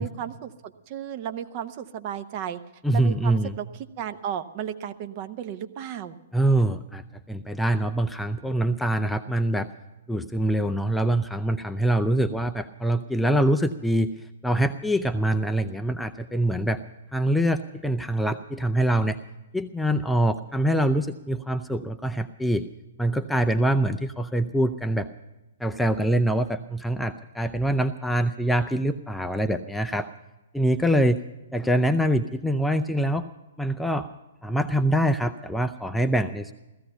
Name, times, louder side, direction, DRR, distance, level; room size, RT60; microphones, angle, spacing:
voice 1, 0.0-2.6 2.9-3.7 4.0-6.2, right 9 dB, 35° right, 10 dB, 0.9 m, -34 dB
voice 2, 2.8-3.5 6.3-7.0 7.3-9.7 10.1-14.1 14.4-16.8 17.1-19.2 19.5-22.7 23.0-25.1 25.6-30.1 30.5-31.2 31.5-33.3 33.6-34.1 34.4-36.5, right 1 dB, ahead, 7 dB, 0.5 m, -24 dB
16.5 x 14.5 x 5.4 m, 1.0 s
figure-of-eight pair, 115°, 0 cm